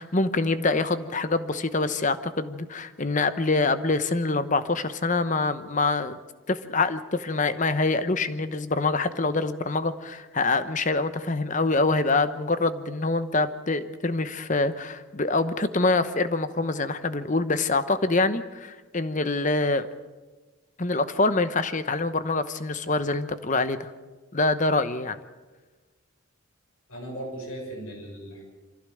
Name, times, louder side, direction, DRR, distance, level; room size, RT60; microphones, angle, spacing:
voice 1, 0.0-6.2 6.5-19.9 20.8-23.9 24.3-25.2, left 3 dB, 35° left, 12 dB, 0.9 m, -25 dB
voice 2, 26.9-28.4, right 1 dB, 75° left, 1 dB, 6.9 m, -37 dB
24.5 x 15.5 x 7.8 m, 1.3 s
head